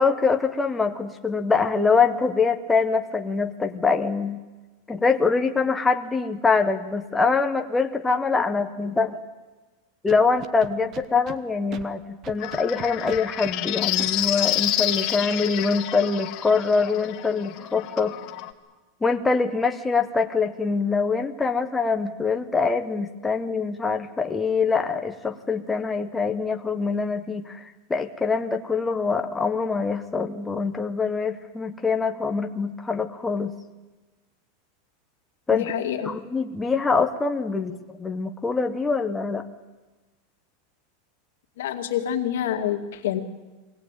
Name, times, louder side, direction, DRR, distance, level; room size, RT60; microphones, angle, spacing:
voice 1, 0.0-4.4 4.9-9.2 10.0-18.1 19.0-27.6 27.9-33.5 35.5-35.6 36.1-39.4, left 4 dB, 10° left, 5 dB, 0.8 m, -24 dB
Scratching (performance technique), 10.1-11.4 11.7-11.8 12.2-13.5 14.0-14.1, right 8 dB, 30° right, 0.9 m, -38 dB
sound 1, 12.4-18.5, left 14 dB, 35° left, 1.3 m, -29 dB
voice 2, 35.5-36.1 41.6-43.2, left 10 dB, 85° left, 4 dB, 2.1 m, -27 dB
23.0 x 17.5 x 9.0 m, 1.2 s
supercardioid pair, 170°, 0 cm